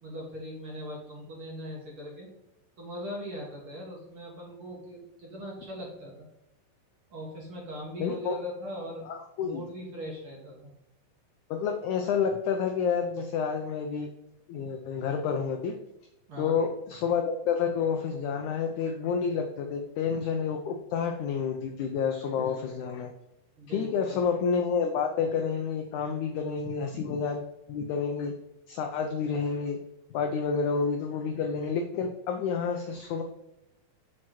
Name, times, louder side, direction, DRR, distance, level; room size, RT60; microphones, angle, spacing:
voice 1, 0.0-2.3 2.8-6.3 7.1-9.0 9.4-10.7 16.3-16.6 22.4-22.6 23.6-24.2, equal, 50° right, -3 dB, 1.9 m, -40 dB
voice 2, 8.0-8.4 9.1-9.6 11.5-14.1 14.5-15.7 16.4-23.1 23.7-27.4 27.7-28.3 28.7-29.8 30.1-33.2, left 6 dB, 85° left, 4 dB, 1.7 m, -29 dB
6.1 x 4.6 x 4.3 m, 0.91 s
omnidirectional pair, 4.2 m